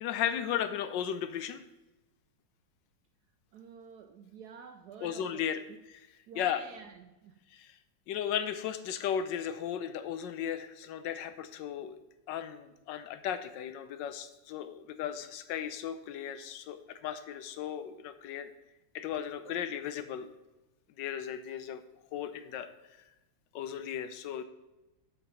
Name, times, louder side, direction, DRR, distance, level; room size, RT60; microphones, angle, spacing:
voice 1, 0.0-1.6 5.0-5.6 5.9-6.1 6.3-6.6 7.5-7.7 8.1-12.0 12.3-18.5 18.9-20.3 21.0-21.8 22.1-22.7 23.5-24.4, left 9 dB, 70° left, 1.2 m, -35 dB
voice 2, 3.5-5.8 6.3-7.4 19.4-19.6, right 6 dB, 75° right, 0.9 m, -50 dB
7.7 x 5.0 x 5.6 m
omnidirectional pair, 2.2 m